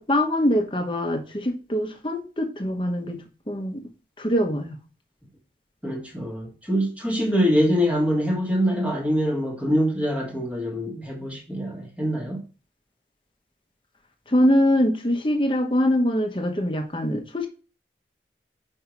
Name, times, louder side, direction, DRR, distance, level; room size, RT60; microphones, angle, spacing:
voice 1, 0.0-3.2 3.5-3.8 4.2-4.8 14.3-17.5, equal, 30° left, 1.1 m, -23 dB
voice 2, 5.8-12.4, equal, 10° right, 1.5 m, -24 dB
5.7 x 5.5 x 4.6 m
head